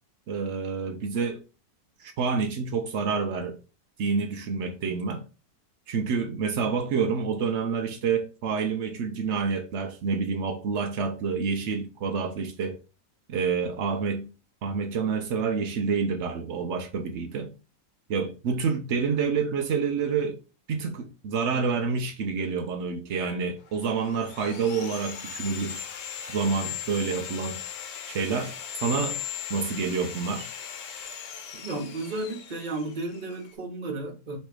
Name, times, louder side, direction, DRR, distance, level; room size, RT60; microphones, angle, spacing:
voice 1, 0.3-1.4 2.0-3.6 4.0-5.2 5.9-12.8 13.3-14.3 14.6-17.5 18.1-20.4 20.7-25.8 26.3-27.6 28.1-29.2 29.5-30.5, right 5 dB, 90° right, 0.6 m, -28 dB
Sawing, 23.7-33.5, left 9 dB, 85° left, 1.4 m, -38 dB
voice 2, 31.6-34.4, right 2 dB, 35° right, 0.8 m, -33 dB
3.2 x 3.1 x 4.6 m
omnidirectional pair, 1.9 m